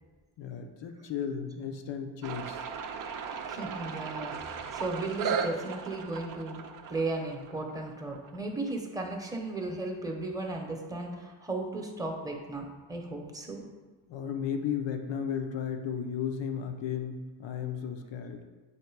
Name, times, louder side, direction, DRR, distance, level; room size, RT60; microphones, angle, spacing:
voice 1, 0.4-2.6 14.1-18.4, left 7 dB, 75° left, 5 dB, 0.7 m, -34 dB
sound 1, 2.2-8.7, right 6 dB, 50° right, 0.4 m, -37 dB
voice 2, 3.5-6.6 6.9-13.6, right 2 dB, 10° right, 1 dB, 0.8 m, -35 dB
8.0 x 2.8 x 4.6 m, 1.3 s
wide cardioid pair, 130°, 44 cm